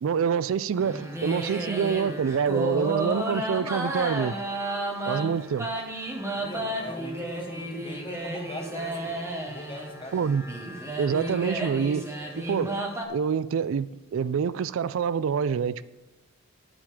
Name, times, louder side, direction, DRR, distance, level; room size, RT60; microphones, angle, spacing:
voice 1, 0.0-4.3 5.1-5.7 10.1-10.4 11.0-12.1 12.3-12.8 13.1-15.9, right 7 dB, 65° right, 0.3 m, -26 dB
sound 1, 0.8-13.1, right 1 dB, 15° right, 1.3 m, -32 dB
voice 2, 6.3-9.2 9.5-10.2, left 1 dB, 25° left, 1.3 m, -40 dB
9.1 x 8.8 x 5.0 m
head